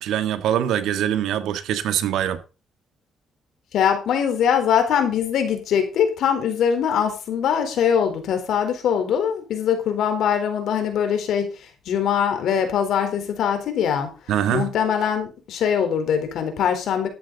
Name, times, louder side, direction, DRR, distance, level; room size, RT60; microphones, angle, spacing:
voice 1, 0.0-2.4 14.3-14.7, right 10 dB, 85° right, 1.7 m, -23 dB
voice 2, 3.7-14.1 14.5-17.1, left 8 dB, 75° left, 4.0 m, -22 dB
13.5 x 10.5 x 4.1 m
cardioid pair, 90°, 0 cm